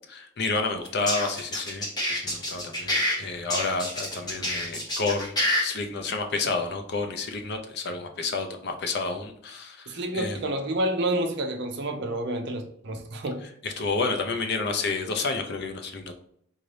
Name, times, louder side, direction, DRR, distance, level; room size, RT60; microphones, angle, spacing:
voice 1, 0.1-5.3 5.6-10.4 13.6-16.1, left 3 dB, 55° left, 5 dB, 0.5 m, -30 dB
sound 1, 0.9-3.2 3.5-5.6, left 1 dB, 20° left, 1.0 m, -27 dB
voice 2, 9.9-13.4, right 1 dB, 55° right, 5 dB, 0.6 m, -29 dB
3.8 x 2.6 x 3.2 m, 0.68 s
head